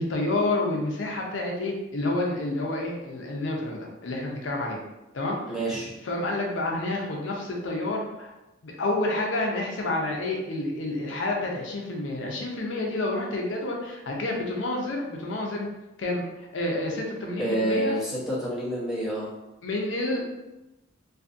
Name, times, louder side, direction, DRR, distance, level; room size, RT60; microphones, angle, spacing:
voice 1, 0.0-4.8 5.1-5.4 6.0-8.3 8.6-15.7 16.0-18.0 19.6-20.2, left 2 dB, 65° left, 0 dB, 0.5 m, -29 dB
voice 2, 5.5-5.9 17.4-19.3, right 1 dB, ahead, -8 dB, 0.7 m, -28 dB
2.5 x 2.5 x 2.4 m, 0.97 s
head